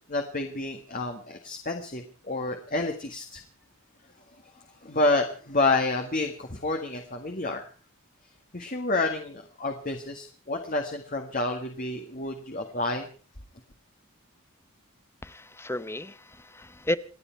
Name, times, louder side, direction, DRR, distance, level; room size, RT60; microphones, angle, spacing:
voice 1, 0.1-3.4 4.5-7.7 8.5-13.1, left 2 dB, 40° left, 4 dB, 1.8 m, -29 dB
voice 2, 15.2-17.0, left 1 dB, 10° left, 15 dB, 0.8 m, -33 dB
29.0 x 9.9 x 4.6 m, 0.39 s
head